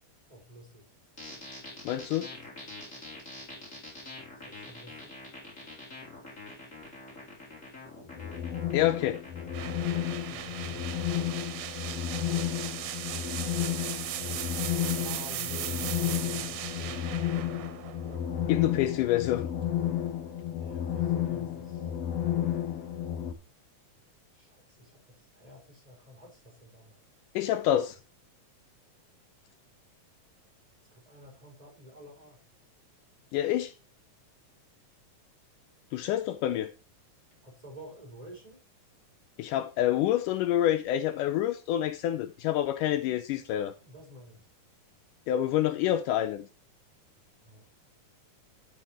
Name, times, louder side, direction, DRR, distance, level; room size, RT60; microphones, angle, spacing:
voice 1, 0.3-0.8 4.5-5.1 10.3-11.4 12.2-12.6 14.2-17.6 20.6-21.8 24.3-27.0 31.0-32.4 37.4-38.6 43.8-44.4 47.4-47.6, equal, 10° right, 4.3 m, -51 dB
sound 1, 1.2-10.1, left 2 dB, 20° left, 5.0 m, -45 dB
voice 2, 1.9-2.3 8.7-9.2 18.5-19.5 27.4-28.0 33.3-33.7 35.9-36.7 39.4-43.7 45.3-46.5, left 12 dB, 80° left, 2.1 m, -27 dB
sound 2, 8.1-23.3, left 10 dB, 65° left, 1.8 m, -32 dB
sound 3, 9.5-19.3, right 12 dB, 75° right, 2.4 m, -38 dB
12.5 x 6.7 x 3.0 m
omnidirectional pair, 3.9 m